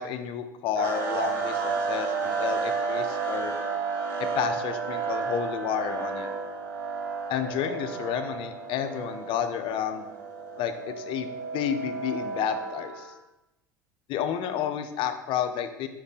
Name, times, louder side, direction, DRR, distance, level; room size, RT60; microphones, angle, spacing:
voice 1, 0.0-3.5 4.2-6.3 7.3-10.1 10.6-13.1 14.1-15.9, left 9 dB, 55° left, 8 dB, 0.4 m, -31 dB
sound 1, 0.8-13.1, right 5 dB, 80° right, 0.6 m, -32 dB
4.9 x 2.6 x 3.6 m, 0.96 s
hypercardioid pair, 80°, 11 cm